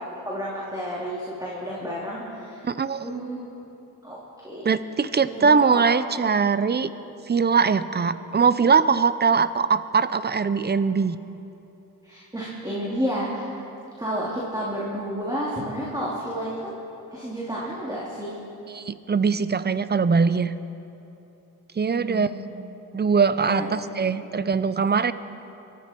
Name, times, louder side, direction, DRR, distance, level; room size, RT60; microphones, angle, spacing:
voice 1, 0.0-2.7 3.0-3.4 4.0-4.2 4.4-4.8 5.2-5.9 6.2-6.3 12.0-13.7 14.0-16.8 17.1-18.4 22.0-22.4 23.5-23.7, equal, 10° right, -6 dB, 3.1 m, -31 dB
voice 2, 2.6-3.0 4.6-6.9 7.3-11.2 18.7-20.5 21.8-22.3 22.9-25.1, right 5 dB, 25° right, 14 dB, 0.6 m, -21 dB
22.5 x 13.0 x 4.5 m, 2.9 s
cardioid pair, 75°, 38 cm